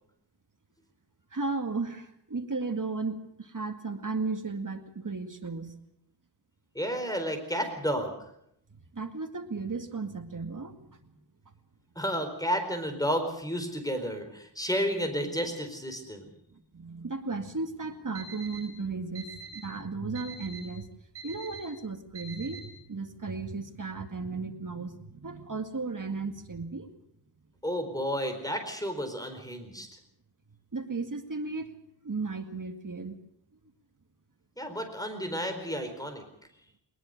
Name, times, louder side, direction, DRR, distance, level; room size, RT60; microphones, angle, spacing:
voice 1, 1.3-5.8 8.7-11.2 16.5-20.9 21.2-26.9 30.7-31.8 32.0-33.2, right 3 dB, 50° right, 5 dB, 2.1 m, -35 dB
voice 2, 6.7-8.2 12.0-16.2 27.6-29.9 34.6-36.2, equal, 10° left, 6 dB, 4.4 m, -31 dB
Alarm, 18.1-18.6 19.1-19.6 20.1-20.6 21.1-21.6 22.1-22.6, right 6 dB, 70° right, 6.7 m, -43 dB
20.5 x 20.5 x 6.6 m, 0.75 s
wide cardioid pair, 85°, 41 cm